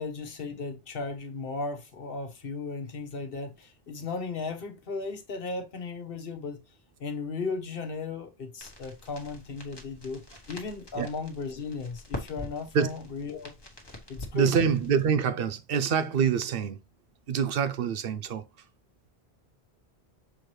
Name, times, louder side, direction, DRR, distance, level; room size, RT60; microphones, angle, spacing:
voice 1, 0.0-6.6 7.0-13.5 14.1-14.6, left 4 dB, 65° left, 1.2 m, -36 dB
sound 1, 8.6-15.1, left 2 dB, 25° left, 1.3 m, -44 dB
voice 2, 14.3-16.8 17.3-18.4, right 7 dB, 65° right, 0.8 m, -26 dB
6.8 x 4.4 x 3.2 m
omnidirectional pair, 1.1 m